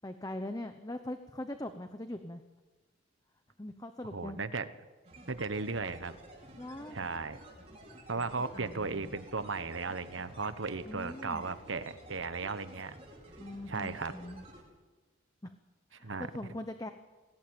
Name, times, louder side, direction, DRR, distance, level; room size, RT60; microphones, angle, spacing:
voice 1, 0.0-2.4 3.6-4.4 6.6-7.0 8.5-9.1 10.9-11.4 13.4-14.4 15.4-15.5 15.9-16.9, left 1 dB, 20° left, 8 dB, 0.9 m, -41 dB
voice 2, 4.1-4.7 5.3-6.1 6.9-7.4 8.1-13.0 13.7-14.1 16.0-16.3, right 4 dB, 75° right, 12 dB, 1.2 m, -36 dB
sound 1, 5.0-14.6, right 1 dB, 30° right, 5.8 m, -52 dB
21.0 x 17.5 x 9.0 m, 1.3 s
head